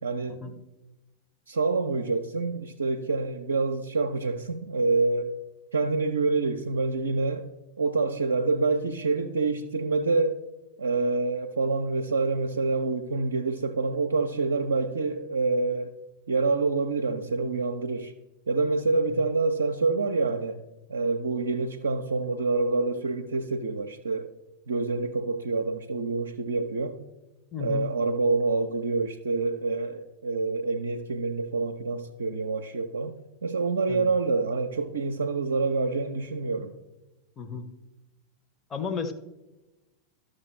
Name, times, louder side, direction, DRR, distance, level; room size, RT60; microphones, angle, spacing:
voice 1, 0.0-0.5 1.5-5.3 5.7-7.5 7.8-10.4 10.8-15.9 16.3-18.1 18.5-20.6 20.9-24.3 24.7-27.0 27.6-36.8, right 3 dB, 70° right, 0.4 m, -27 dB
voice 2, 27.5-27.9 33.9-34.1 37.4-37.7 38.7-39.1, left 6 dB, 20° left, 0.8 m, -32 dB
12.5 x 6.3 x 3.1 m
figure-of-eight pair, 90°, 0 cm